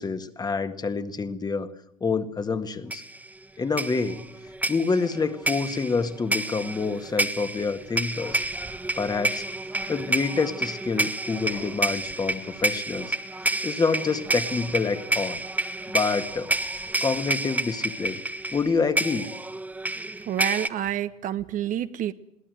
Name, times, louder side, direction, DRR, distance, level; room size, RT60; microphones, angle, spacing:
voice 1, 0.0-1.7 2.0-3.0 3.6-4.3 4.7-8.4 9.0-9.4 9.9-13.2 13.6-15.4 15.9-16.5 17.0-18.2 18.5-19.3, left 4 dB, 20° left, 9 dB, 1.8 m, -27 dB
sound 1, 2.9-3.3 3.8-20.7, right 2 dB, 10° right, 1.3 m, -29 dB
voice 2, 20.3-22.1, right 10 dB, 45° right, 11 dB, 1.2 m, -28 dB
21.5 x 17.5 x 7.8 m, 0.76 s
hypercardioid pair, 75°, 19 cm